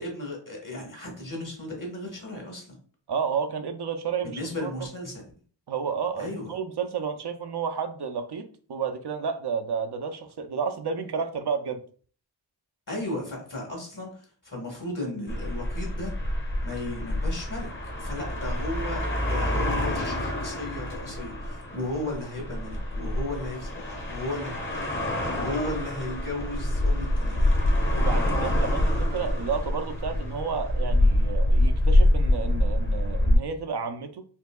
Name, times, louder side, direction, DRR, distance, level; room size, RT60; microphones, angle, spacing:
voice 1, 0.0-2.8 4.2-5.2 6.2-6.5 12.9-16.1 16.6-17.7 18.0-27.9, left 1 dB, 45° left, 0 dB, 1.6 m, -35 dB
voice 2, 3.1-4.7 5.7-11.8 28.0-34.3, right 6 dB, 65° right, 6 dB, 0.5 m, -31 dB
sound 1, 15.3-33.4, left 1 dB, 25° left, 1.0 m, -26 dB
4.4 x 2.7 x 2.3 m, 0.44 s
wide cardioid pair, 45°, 44 cm